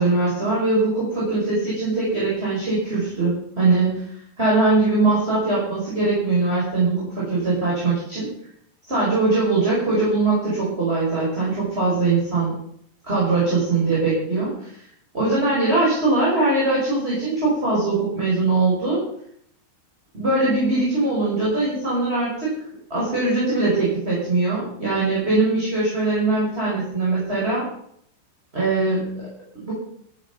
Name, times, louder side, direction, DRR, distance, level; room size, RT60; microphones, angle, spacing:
voice 1, 0.0-4.1 4.4-8.3 8.9-12.5 13.0-14.7 15.1-19.0 20.1-22.6 22.9-27.7 28.5-29.3 29.6-29.7, right 3 dB, 10° right, -6 dB, 5.7 m, -21 dB
13.5 x 13.5 x 5.5 m, 0.68 s
omnidirectional pair, 5.6 m